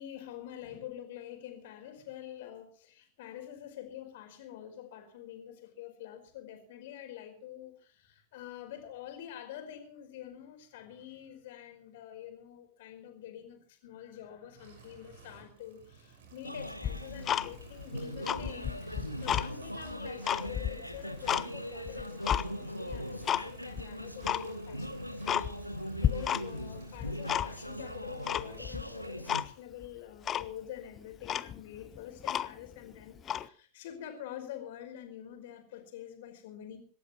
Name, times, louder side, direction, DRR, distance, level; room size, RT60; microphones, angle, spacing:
voice 1, 0.0-25.0 25.4-36.8, left 11 dB, 55° left, 5 dB, 5.0 m, -46 dB
sound 1, 14.5-29.2, right 5 dB, 60° right, 6.2 m, -54 dB
sound 2, 16.4-29.5, equal, 90° left, 1.2 m, -41 dB
Tick-tock, 16.8-17.8 18.2-19.5 19.9-21.5 21.9-22.5 22.9-23.5 23.7-23.8 24.2-24.5 24.9-25.0 25.3-25.8 26.0-26.7 26.9-27.7 28.3-28.8 29.3-29.5 29.8-29.9 30.3-30.5 31.0-31.1 31.2-32.7 33.2-33.5, left 10 dB, 25° left, 0.7 m, -32 dB
26.0 x 13.0 x 3.1 m, 0.41 s
figure-of-eight pair, 90°, 0 cm